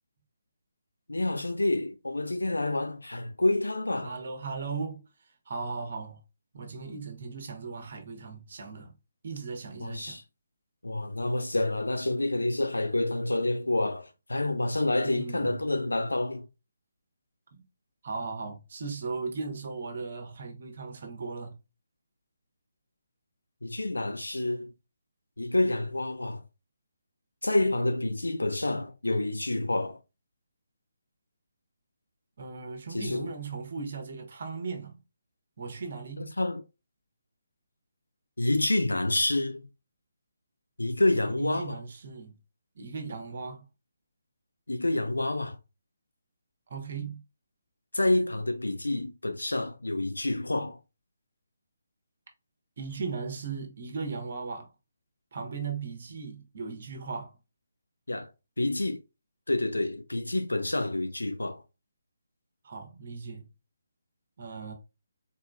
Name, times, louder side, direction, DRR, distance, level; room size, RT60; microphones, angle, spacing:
voice 1, 1.1-4.2 9.8-10.2 10.8-16.5 23.6-24.7 25.4-26.4 27.4-30.0 32.9-33.3 36.2-36.6 38.4-39.7 40.8-41.8 44.7-45.6 47.9-50.8 58.1-58.3 58.6-59.0 59.5-61.6, left 2 dB, 70° left, 0.8 m, -28 dB
voice 2, 4.0-6.2 6.5-8.9 9.2-10.2 15.0-15.6 17.5-17.6 18.0-21.6 32.4-35.0 35.6-36.3 41.2-42.3 42.7-43.7 46.7-47.2 52.8-54.7 55.3-57.4 62.6-63.5 64.4-64.7, right 4 dB, 45° right, 1.1 m, -37 dB
4.2 x 3.6 x 2.3 m
figure-of-eight pair, 145°, 0 cm